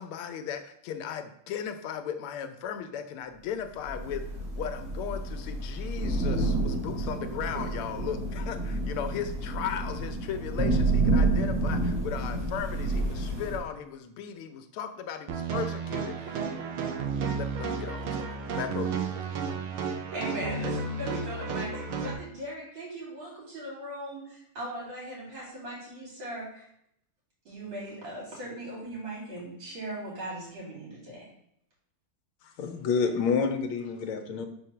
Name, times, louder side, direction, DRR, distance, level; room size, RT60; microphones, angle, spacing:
voice 1, 0.0-16.4 16.8-16.9 17.3-19.1, left 8 dB, 90° left, 8 dB, 1.6 m, -37 dB
Thunder / Rain, 3.8-13.6, right 2 dB, 45° right, 2.1 m, -29 dB
sound 1, 15.3-22.1, right 5 dB, 80° right, 1.7 m, -32 dB
voice 2, 20.1-26.7 27.5-31.2, right 1 dB, 60° right, -6 dB, 3.6 m, -39 dB
voice 3, 32.6-34.5, left 5 dB, 75° left, 5 dB, 1.5 m, -28 dB
4.9 x 3.9 x 5.7 m, 0.73 s
omnidirectional pair, 2.3 m